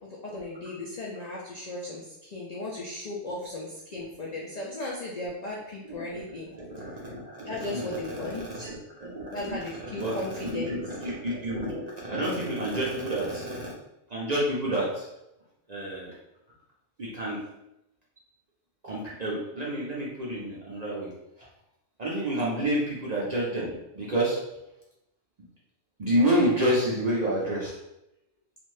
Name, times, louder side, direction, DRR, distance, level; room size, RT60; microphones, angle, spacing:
voice 1, 0.2-6.5 7.5-8.7 9.3-10.8 22.4-22.7, left 2 dB, 75° left, -4 dB, 0.3 m, -36 dB
voice 2, 5.8-6.2 6.5-9.6 9.9-13.7 14.1-15.1 15.7-16.1 17.0-17.4 18.8-21.1 22.0-24.4 26.0-27.7, right 1 dB, 45° right, -5 dB, 0.5 m, -29 dB
2.6 x 2.5 x 3.1 m, 0.88 s
omnidirectional pair, 1.3 m